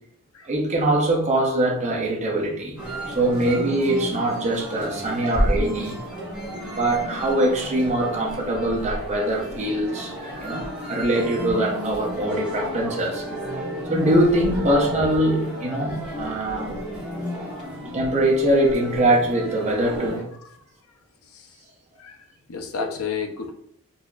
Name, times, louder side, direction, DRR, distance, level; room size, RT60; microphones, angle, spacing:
voice 1, 0.4-2.8 3.1-6.0 6.6-10.1 10.4-13.2 13.9-16.8 17.9-20.2, right 1 dB, 30° right, -2 dB, 0.8 m, -22 dB
sound 1, 2.8-20.2, equal, 5° right, 1.1 m, -31 dB
voice 2, 22.5-23.5, left 5 dB, 70° left, 3 dB, 0.6 m, -32 dB
4.1 x 2.7 x 2.4 m, 0.73 s
head